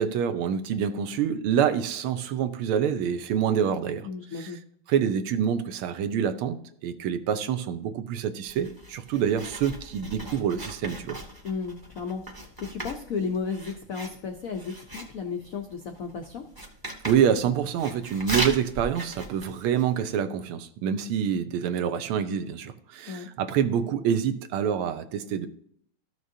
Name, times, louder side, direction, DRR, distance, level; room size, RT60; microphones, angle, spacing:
voice 1, 0.0-4.1 4.4-4.5 4.9-11.2 17.0-25.5, right 8 dB, 80° right, 10 dB, 1.6 m, -26 dB
voice 2, 4.0-4.6 11.4-16.4 23.1-23.3, left 5 dB, 80° left, 5 dB, 0.7 m, -34 dB
Writing, 8.4-20.0, right 1 dB, 15° right, 0.9 m, -38 dB
14.0 x 6.3 x 2.7 m, 0.66 s
omnidirectional pair, 2.4 m